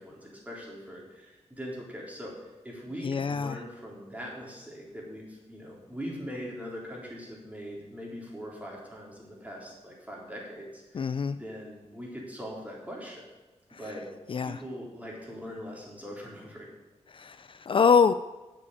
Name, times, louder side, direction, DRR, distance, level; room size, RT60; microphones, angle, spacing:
voice 1, 0.0-2.3 2.6-13.3 13.8-14.1 14.4-16.7, equal, 10° right, -3 dB, 3.6 m, -41 dB
voice 2, 3.0-3.6 10.9-11.4 13.7-13.9 14.3-14.6 17.1-18.1, left 6 dB, 45° left, 12 dB, 0.3 m, -25 dB
8.4 x 7.6 x 8.7 m, 1.2 s
wide cardioid pair, 105°, 12 cm